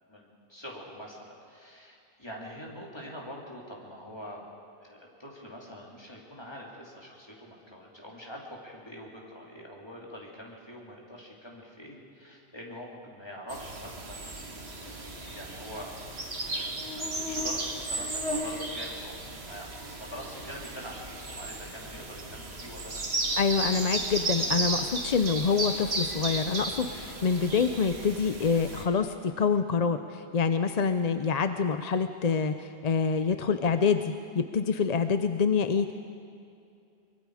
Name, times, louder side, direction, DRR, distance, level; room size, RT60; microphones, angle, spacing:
voice 1, 0.1-4.5 4.8-14.5 14.8-15.9 16.5-19.7 20.0-23.0, equal, 25° left, -3 dB, 3.2 m, -44 dB
sound 1, 13.5-28.8, right 2 dB, 70° right, 2.2 m, -34 dB
voice 2, 23.4-35.9, left 5 dB, 45° left, 9 dB, 0.6 m, -26 dB
23.5 x 23.0 x 4.9 m, 2.5 s
omnidirectional pair, 1.1 m